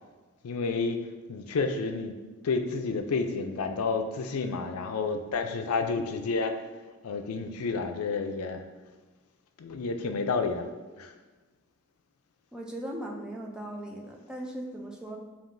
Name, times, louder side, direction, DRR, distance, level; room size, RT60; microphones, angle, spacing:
voice 1, 0.4-1.0 1.3-2.1 2.4-6.6 7.0-8.6 9.6-10.6 11.0-11.1, left 4 dB, 85° left, 6 dB, 0.4 m, -30 dB
voice 2, 12.5-15.2, right 1 dB, 5° right, -1 dB, 0.4 m, -38 dB
7.1 x 2.8 x 2.6 m, 1.3 s
head